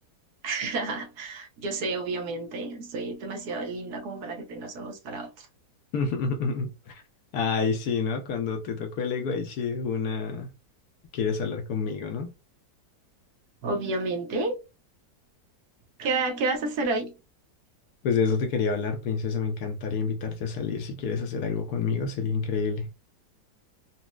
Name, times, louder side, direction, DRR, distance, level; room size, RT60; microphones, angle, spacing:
voice 1, 0.4-5.5 13.6-14.5 16.0-17.1, right 3 dB, 70° right, 1.2 m, -30 dB
voice 2, 5.9-7.0 7.3-10.5 11.1-12.3 18.0-22.9, left 5 dB, 70° left, 1.0 m, -28 dB
4.1 x 2.0 x 2.2 m
omnidirectional pair, 1.9 m